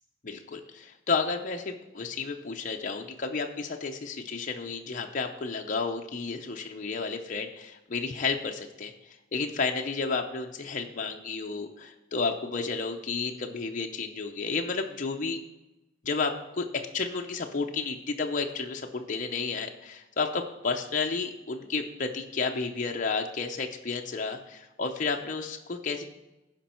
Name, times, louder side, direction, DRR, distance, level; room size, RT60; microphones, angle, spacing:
voice 1, 0.2-15.4 16.0-26.0, left 4 dB, 40° left, 2 dB, 0.7 m, -32 dB
15.5 x 5.2 x 4.4 m, 1.0 s
head